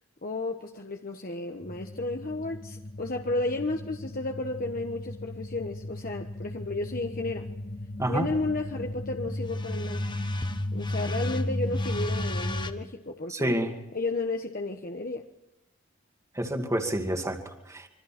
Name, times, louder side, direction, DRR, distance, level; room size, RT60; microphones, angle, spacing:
voice 1, 0.2-7.5 8.1-10.1 10.7-13.6 13.9-15.3, left 2 dB, 45° left, 3 dB, 1.3 m, -33 dB
sound 1, 1.6-12.7, left 1 dB, 20° left, 1.2 m, -34 dB
voice 2, 13.3-13.8 16.3-17.9, right 1 dB, 15° right, 4 dB, 2.3 m, -29 dB
26.5 x 24.0 x 4.4 m, 0.94 s
head